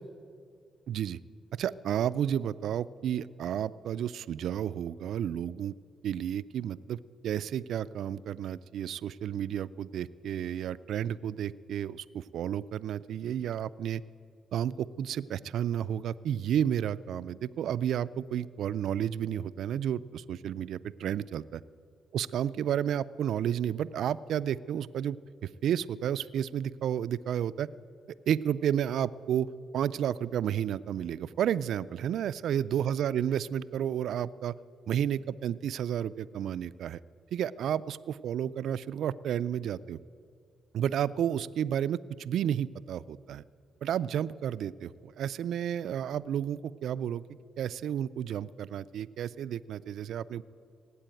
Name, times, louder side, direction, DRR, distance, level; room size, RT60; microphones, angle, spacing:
voice 1, 0.9-1.2 1.5-5.7 6.0-14.0 14.5-21.6 22.1-25.2 25.4-27.7 28.3-29.5 29.7-34.5 34.9-37.0 37.3-40.0 40.7-43.4 43.8-47.2 47.6-50.4, right 9 dB, 80° right, 16 dB, 0.3 m, -31 dB
18.0 x 8.4 x 9.0 m, 2.2 s
cardioid pair, 80°, 0 cm